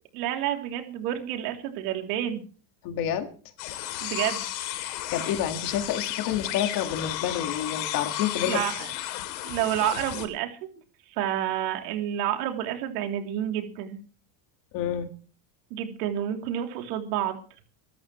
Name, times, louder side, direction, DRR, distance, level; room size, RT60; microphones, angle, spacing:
voice 1, 0.1-2.4 4.0-4.5 8.5-8.9 9.4-10.5 11.1-14.0 15.7-17.4, right 11 dB, 70° right, 4 dB, 3.2 m, -29 dB
voice 2, 2.8-3.3 4.8-8.6 14.7-15.1, left 10 dB, 40° left, 6 dB, 1.9 m, -29 dB
sound 1, 3.6-10.3, left 13 dB, 80° left, 3.2 m, -33 dB
24.5 x 13.5 x 3.1 m, 0.39 s
cardioid pair, 175°, 49 cm